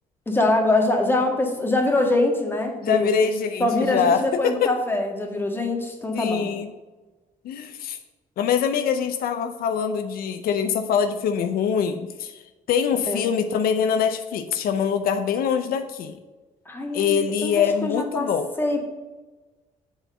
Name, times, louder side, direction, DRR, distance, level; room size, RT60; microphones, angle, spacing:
voice 1, 0.3-3.1 3.6-6.5 13.1-13.2 16.7-18.3 18.6-18.8, left 2 dB, 15° left, 2 dB, 1.6 m, -23 dB
voice 2, 2.8-4.7 6.1-6.7 7.4-8.0 8.4-12.4 12.7-16.2 16.9-18.5, left 7 dB, 80° left, 8 dB, 0.6 m, -24 dB
6.8 x 4.5 x 6.6 m, 1.2 s
cardioid pair, 90°, 15 cm